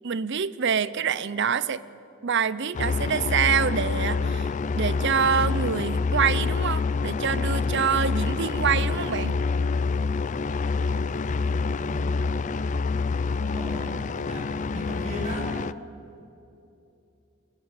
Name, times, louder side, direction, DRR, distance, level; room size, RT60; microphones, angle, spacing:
voice 1, 0.0-1.8 2.2-9.4, right 6 dB, 55° right, 17 dB, 0.6 m, -26 dB
sound 1, 2.7-15.7, left 4 dB, 35° left, 0.4 m, -27 dB
voice 2, 11.7-12.4 13.4-15.5, equal, 35° right, 0 dB, 5.6 m, -38 dB
22.5 x 15.0 x 9.6 m, 2.8 s
head